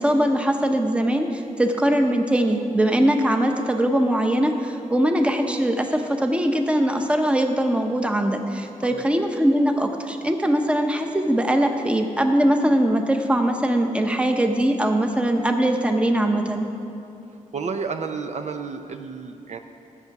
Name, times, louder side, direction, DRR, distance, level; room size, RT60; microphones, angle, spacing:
voice 1, 0.0-16.7, right 1 dB, 10° right, 4 dB, 0.8 m, -21 dB
voice 2, 17.5-19.6, right 5 dB, 60° right, 6 dB, 0.6 m, -31 dB
13.5 x 8.0 x 5.9 m, 2.7 s
wide cardioid pair, 130°, 13 cm